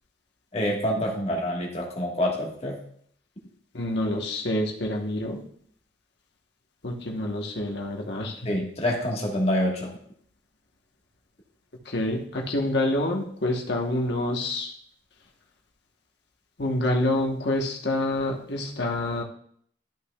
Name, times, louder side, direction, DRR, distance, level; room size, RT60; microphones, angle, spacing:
voice 1, 0.5-2.8 8.4-9.9, equal, 30° left, -1 dB, 1.4 m, -26 dB
voice 2, 3.7-5.4 6.8-8.4 11.9-14.7 16.6-19.2, left 1 dB, 65° left, 0 dB, 1.2 m, -27 dB
12.0 x 5.8 x 2.3 m, 0.62 s
head